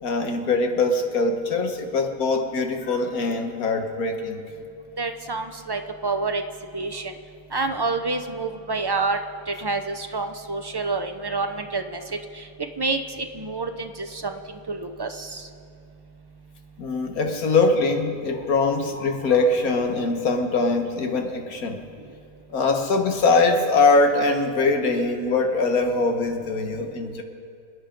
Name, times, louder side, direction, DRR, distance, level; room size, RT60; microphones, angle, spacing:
voice 1, 0.0-4.5 16.8-21.8 22.5-27.2, left 3 dB, 80° left, 5 dB, 1.8 m, -22 dB
voice 2, 5.0-6.4 6.7-7.1 7.5-9.2 9.5-12.0 12.4-12.5 12.8-13.0 13.3-15.4, right 3 dB, 40° right, 6 dB, 0.3 m, -28 dB
27.5 x 9.8 x 5.2 m, 2.4 s
omnidirectional pair, 1.5 m